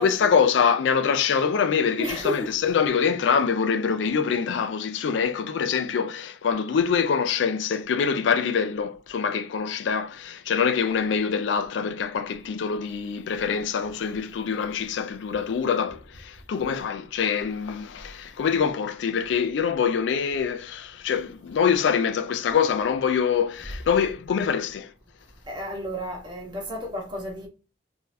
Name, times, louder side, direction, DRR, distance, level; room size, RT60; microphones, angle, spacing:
voice 1, 0.0-24.9, left 6 dB, 85° left, 0.4 m, -24 dB
voice 2, 2.0-2.5 23.6-23.7 25.5-27.5, left 1 dB, 25° right, 1.0 m, -32 dB
3.8 x 2.6 x 2.6 m
head